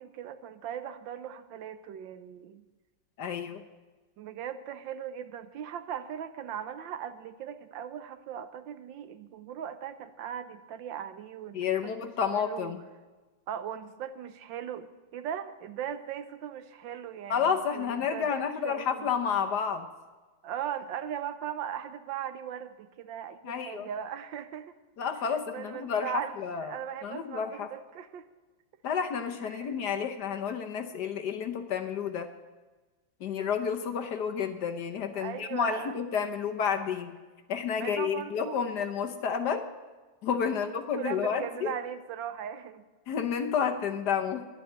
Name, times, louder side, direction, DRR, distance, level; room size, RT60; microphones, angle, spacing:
voice 1, 0.0-2.7 4.2-12.8 13.5-19.1 20.4-24.7 25.5-28.3 29.4-29.7 35.1-36.0 37.8-38.7 40.5-40.7 40.9-42.8, right 9 dB, 70° right, 12 dB, 1.3 m, -39 dB
voice 2, 3.2-3.6 11.5-12.8 17.3-19.9 23.4-23.9 25.0-27.7 28.8-32.3 33.2-37.2 37.5-39.6 40.2-41.7 43.1-44.5, left 7 dB, 60° left, 6 dB, 1.3 m, -30 dB
11.5 x 10.5 x 7.9 m, 1.3 s
omnidirectional pair, 2.2 m